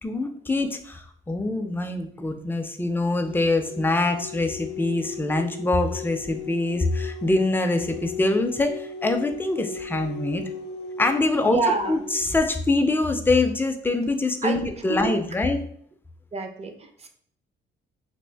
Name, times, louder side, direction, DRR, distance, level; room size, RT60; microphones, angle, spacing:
voice 1, 0.0-10.4 11.0-11.6 11.9-15.6, left 2 dB, 10° left, 5 dB, 0.4 m, -24 dB
sound 1, 3.2-12.3, left 5 dB, 60° left, 0.5 m, -37 dB
voice 2, 11.4-12.0 14.4-14.6 14.9-15.2 16.3-17.1, right 3 dB, 30° right, 6 dB, 0.6 m, -27 dB
3.4 x 2.4 x 3.3 m, 0.62 s
cardioid pair, 90°, 20 cm